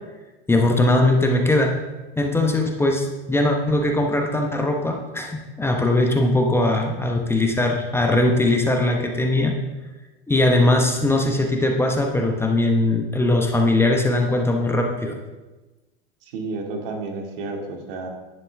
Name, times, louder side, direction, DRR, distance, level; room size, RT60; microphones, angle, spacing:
voice 1, 0.5-1.8 2.2-9.6 10.3-15.2, left 2 dB, 10° left, 2 dB, 1.0 m, -20 dB
voice 2, 16.2-18.1, right 3 dB, 65° right, 2 dB, 2.3 m, -31 dB
11.0 x 9.7 x 3.5 m, 1.1 s
hypercardioid pair, 115°, 30 cm